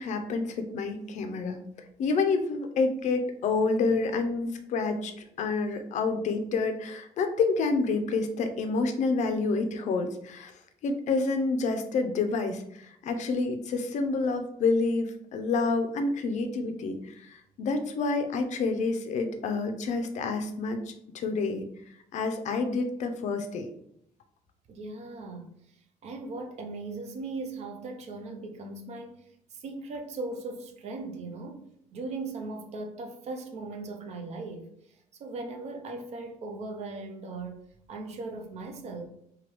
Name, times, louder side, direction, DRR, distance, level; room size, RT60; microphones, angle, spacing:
voice 1, 0.0-1.6 2.0-21.7 22.1-23.7, left 3 dB, 55° left, 6 dB, 0.4 m, -28 dB
voice 2, 24.7-31.6 31.9-39.1, right 3 dB, 50° right, 5 dB, 0.4 m, -39 dB
3.2 x 2.2 x 2.9 m, 0.74 s
cardioid pair, 170°, 14 cm